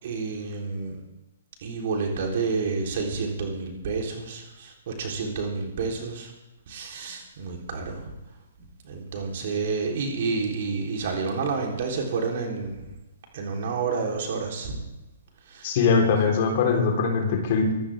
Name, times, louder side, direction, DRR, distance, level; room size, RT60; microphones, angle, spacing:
voice 1, 0.0-1.0 1.6-6.3 6.7-8.1 8.8-13.0 13.3-14.8 15.4-15.7, right 4 dB, 45° right, 1 dB, 3.8 m, -29 dB
voice 2, 15.6-17.7, left 5 dB, 40° left, 2 dB, 3.9 m, -22 dB
24.0 x 13.5 x 3.6 m, 1.0 s
figure-of-eight pair, 120°, 0 cm